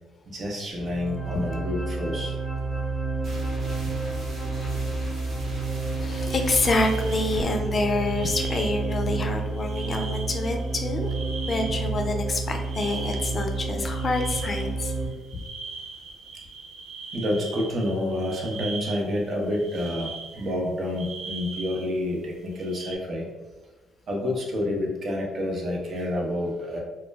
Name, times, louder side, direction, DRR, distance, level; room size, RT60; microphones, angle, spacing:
voice 1, 0.3-2.4 17.1-23.3 24.1-26.8, left 1 dB, 50° right, -1 dB, 0.6 m, -28 dB
sound 1, 0.7-15.1, right 3 dB, 10° right, 0.8 m, -30 dB
sound 2, 3.2-8.9, left 1 dB, 70° right, 0.9 m, -40 dB
voice 2, 4.3-5.1 6.0-11.1 11.5-14.9, left 2 dB, 40° left, 3 dB, 0.4 m, -27 dB
sound 3, 6.1-20.6 20.9-21.9 22.5-23.0, right 4 dB, 90° right, 0.3 m, -41 dB
2.2 x 2.1 x 3.2 m, 1.2 s
cardioid pair, 90°, 0 cm